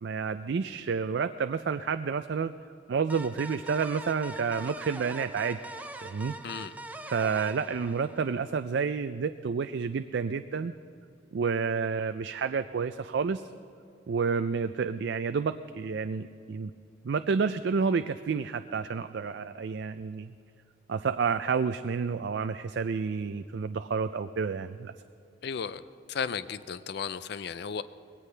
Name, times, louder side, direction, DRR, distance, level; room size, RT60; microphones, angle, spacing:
voice 1, 0.0-2.5 2.9-5.6 6.0-6.3 7.1-10.7 11.3-13.4 14.1-16.7 17.0-20.3 20.9-24.9, right 5 dB, 65° right, 10 dB, 0.4 m, -30 dB
sound 1, 3.1-8.5, right 1 dB, 10° right, 0.5 m, -43 dB
voice 2, 25.4-25.8 26.1-27.8, left 6 dB, 55° left, 14 dB, 0.4 m, -34 dB
20.5 x 17.5 x 3.3 m, 2.5 s
head